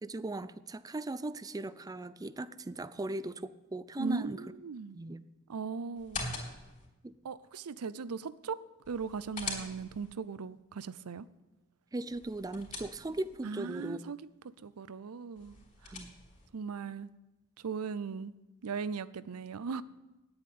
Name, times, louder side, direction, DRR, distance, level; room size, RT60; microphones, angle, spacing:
voice 1, 0.0-4.4 4.9-5.2 7.0-7.1 11.9-14.0 15.9-16.1, right 2 dB, 15° right, 15 dB, 0.4 m, -38 dB
voice 2, 4.0-5.0 5.5-6.3 7.2-11.3 13.4-14.3 14.6-15.6 15.8-15.9 16.5-17.1 17.6-18.3 18.6-19.8, right 5 dB, 90° right, 17 dB, 0.5 m, -38 dB
sound 1, 5.9-6.9 8.8-10.1 12.1-13.4 15.3-16.5, left 3 dB, 35° left, 3.4 m, -42 dB
9.6 x 8.7 x 9.2 m, 1.0 s
head